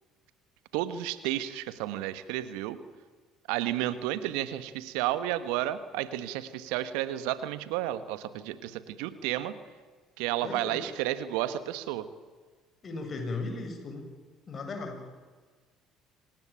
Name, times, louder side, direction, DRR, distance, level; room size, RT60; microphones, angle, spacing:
voice 1, 0.7-2.8 3.5-9.5 10.2-12.1, right 13 dB, 75° right, 13 dB, 1.4 m, -32 dB
voice 2, 10.4-10.8 12.8-14.1 14.5-15.1, left 3 dB, 40° left, 4 dB, 7.5 m, -36 dB
26.5 x 18.5 x 9.1 m, 1.5 s
hypercardioid pair, 55°, 0 cm